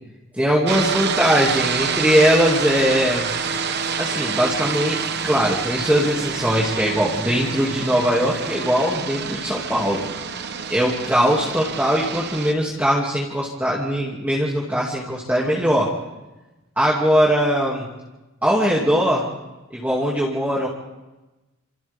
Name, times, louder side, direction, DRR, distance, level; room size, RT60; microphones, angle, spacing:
voice 1, 0.3-3.3 4.0-5.0 5.2-10.0 10.7-15.9 16.8-17.9 18.4-19.2 19.7-20.7, equal, 10° right, -5 dB, 2.7 m, -20 dB
sound 1, 0.7-12.5, right 6 dB, 55° right, 1.2 m, -27 dB
28.0 x 28.0 x 3.7 m, 1.1 s
head